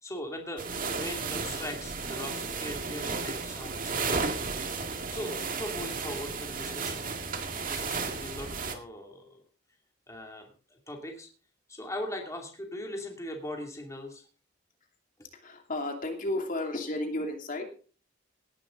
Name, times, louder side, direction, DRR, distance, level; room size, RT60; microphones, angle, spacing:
voice 1, 0.0-4.3 5.1-7.1 7.7-9.4 10.1-11.3 11.7-14.3, left 1 dB, 15° left, 2 dB, 2.6 m, -40 dB
sound 1, 0.6-8.7, right 4 dB, 45° right, 2.1 m, -33 dB
voice 2, 15.3-17.7, left 1 dB, 45° left, 3 dB, 2.7 m, -33 dB
18.0 x 11.0 x 3.9 m, 0.39 s
head